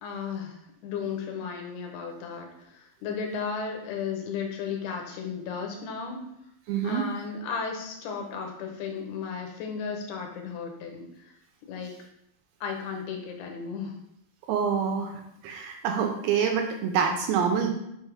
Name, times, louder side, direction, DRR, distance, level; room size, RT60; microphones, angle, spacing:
voice 1, 0.0-6.2 6.8-11.3 11.7-11.9 12.6-13.9, left 6 dB, 75° left, 2 dB, 2.9 m, -34 dB
voice 2, 6.7-7.0 14.5-15.1 15.4-17.7, right 7 dB, 80° right, 3 dB, 2.1 m, -26 dB
6.5 x 3.6 x 4.8 m, 0.80 s
omnidirectional pair, 4.7 m